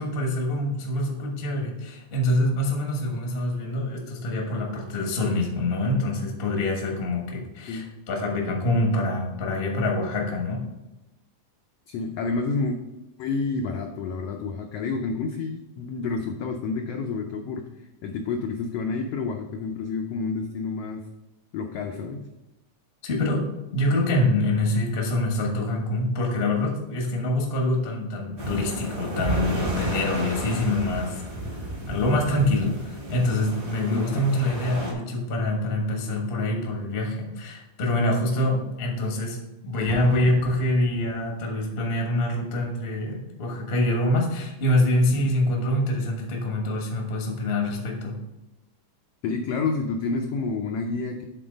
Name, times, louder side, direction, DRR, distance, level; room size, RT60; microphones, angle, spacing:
voice 1, 0.0-10.7 23.0-31.2 31.6-48.2, left 1 dB, 65° left, 0 dB, 0.5 m, -25 dB
voice 2, 11.9-12.8 13.2-21.0 21.5-22.2 33.9-34.2 49.2-51.2, left 4 dB, 90° left, 2 dB, 1.3 m, -29 dB
sound 1, 28.4-34.9, right 1 dB, 45° right, 0.7 m, -32 dB
Explosion, 39.9-41.5, left 1 dB, 75° right, 2.6 m, -38 dB
8.1 x 3.9 x 5.1 m, 1.0 s
omnidirectional pair, 3.5 m